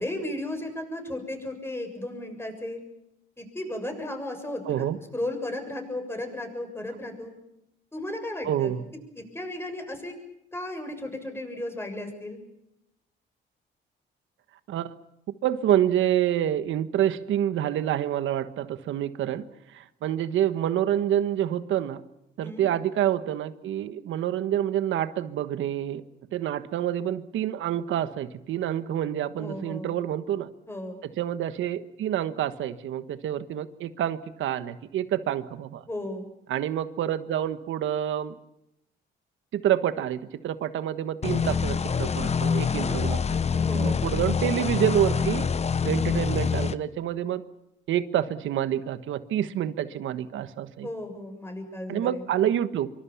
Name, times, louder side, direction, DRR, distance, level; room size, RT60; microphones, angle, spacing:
voice 1, 0.0-2.8 3.4-7.3 7.9-8.7 9.3-10.1 10.5-12.4 22.4-22.7 29.4-29.9 30.7-31.0 35.9-36.3 43.6-44.0 50.8-52.3, left 1 dB, 10° left, 5 dB, 7.1 m, -35 dB
voice 2, 4.7-5.0 8.4-8.8 14.7-14.9 15.4-22.0 22.4-26.0 26.3-30.5 31.2-35.8 36.5-38.3 39.5-45.5 45.8-47.4 47.9-50.9 51.9-52.9, right 11 dB, 80° right, 12 dB, 1.4 m, -27 dB
sound 1, 41.2-46.7, left 6 dB, 35° left, 0.9 m, -25 dB
24.5 x 24.5 x 7.3 m, 0.86 s
cardioid pair, 90°, 20 cm